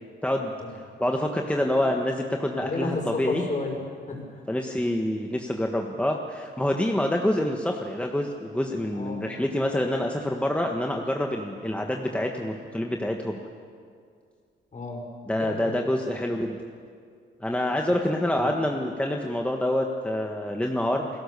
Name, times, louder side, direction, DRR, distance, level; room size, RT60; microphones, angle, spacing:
voice 1, 1.0-3.4 4.5-13.4 15.3-16.6 17.4-21.1, left 1 dB, 5° left, 2 dB, 1.6 m, -27 dB
voice 2, 2.6-4.4 8.9-9.3 14.7-15.0 15.4-15.8 18.3-18.5, left 3 dB, 40° left, 2 dB, 5.8 m, -32 dB
29.5 x 17.0 x 6.9 m, 2.2 s
cardioid pair, 100°, 20 cm